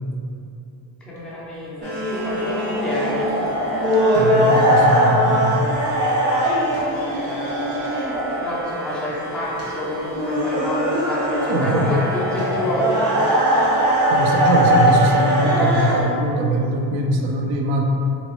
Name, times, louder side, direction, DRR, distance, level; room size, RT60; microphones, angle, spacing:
voice 1, 1.1-3.3 6.9-7.6 8.4-13.2, left 1 dB, ahead, -8 dB, 0.3 m, -28 dB
sound 1, 1.2-1.3 1.8-4.0 5.7-8.4 9.9-12.7 15.0-15.1, equal, 30° right, 0.6 m, -30 dB
sound 2, 1.8-16.0, equal, 60° right, 1.2 m, -21 dB
voice 2, 4.1-5.6 11.5-12.0 14.1-17.8, right 1 dB, 75° right, 2 dB, 0.5 m, -21 dB
3.0 x 2.9 x 2.9 m, 2.7 s
cardioid pair, 155°, 47 cm